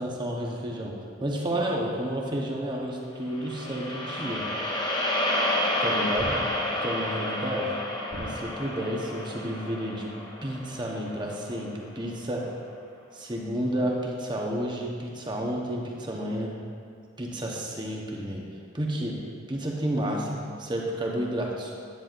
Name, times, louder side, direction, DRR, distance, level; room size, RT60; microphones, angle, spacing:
voice 1, 0.0-4.4 5.8-6.4 6.8-7.7 8.2-10.1 10.4-12.4 13.1-16.6 17.2-18.4 18.7-19.2 19.5-21.7, right 1 dB, 25° right, -1 dB, 0.9 m, -31 dB
sound 1, 3.3-11.6, left 1 dB, 20° left, 0.7 m, -30 dB
sound 2, 6.2-7.0 8.1-8.9, equal, 65° left, 1.5 m, -40 dB
10.5 x 9.1 x 2.5 m, 2.2 s
head